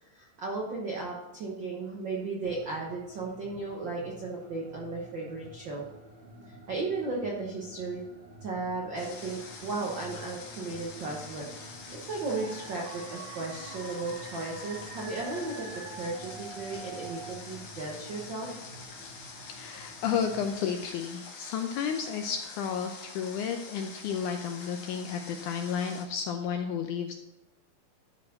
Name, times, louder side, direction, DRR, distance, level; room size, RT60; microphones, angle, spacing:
voice 1, 0.0-5.8 6.5-8.0 8.4-18.5, right 3 dB, 85° right, -2 dB, 1.0 m, -35 dB
sound 1, 2.4-20.5, right 1 dB, 50° right, 0.7 m, -51 dB
Water, 9.0-26.0, left 4 dB, 60° left, 1.4 m, -46 dB
sound 2, 12.2-17.3, right 3 dB, 65° right, 3.0 m, -45 dB
voice 2, 19.4-27.1, left 7 dB, 85° left, 5 dB, 1.8 m, -32 dB
12.5 x 4.4 x 4.2 m, 0.97 s
omnidirectional pair, 4.0 m